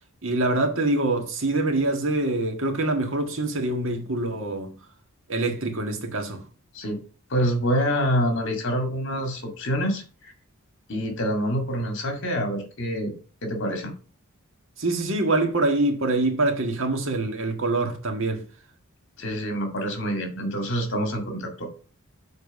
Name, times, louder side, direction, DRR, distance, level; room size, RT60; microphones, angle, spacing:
voice 1, 0.2-4.8 5.3-6.4 14.8-18.4, right 2 dB, 65° right, 1.7 m, -25 dB
voice 2, 7.3-10.3 10.9-13.1 13.4-13.9 19.2-21.7, equal, 60° left, 2.2 m, -26 dB
7.0 x 4.5 x 5.4 m
head